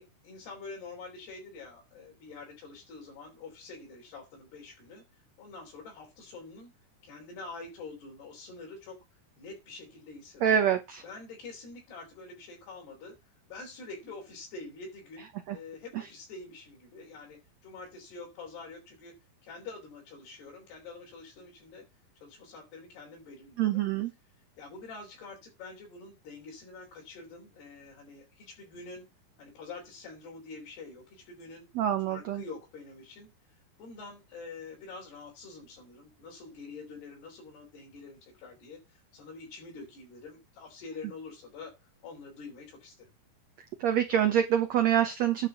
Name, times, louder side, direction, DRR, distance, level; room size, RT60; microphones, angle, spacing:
voice 1, 0.0-5.0 5.4-6.7 7.0-9.0 9.4-10.5 11.0-13.2 13.5-19.1 19.4-21.9 22.2-23.9 24.6-29.1 29.4-31.7 32.1-33.3 33.8-41.8 42.0-43.1, left 3 dB, 75° left, 6.4 m, -46 dB
voice 2, 10.4-11.0 15.5-15.6 15.9-16.0 23.6-24.1 31.7-32.4 43.8-45.5, right 9 dB, 70° right, 1.6 m, -26 dB
10.5 x 5.2 x 7.2 m
omnidirectional pair, 4.6 m